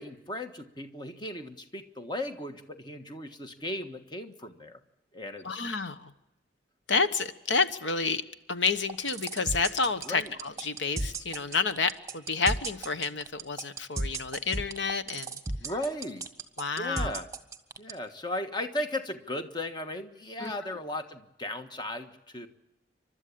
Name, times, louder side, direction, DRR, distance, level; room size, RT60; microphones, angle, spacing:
voice 1, 0.0-4.8 5.1-5.6 10.0-10.3 15.6-16.3 16.8-17.3 17.8-22.5, left 1 dB, 25° left, 7 dB, 1.4 m, -36 dB
voice 2, 5.4-6.1 6.9-8.2 8.5-15.4 16.6-17.2 20.4-20.5, left 4 dB, 75° left, 11 dB, 1.2 m, -29 dB
sound 1, 8.8-17.9, right 2 dB, 15° right, 1.5 m, -33 dB
29.0 x 13.0 x 8.6 m, 0.94 s
head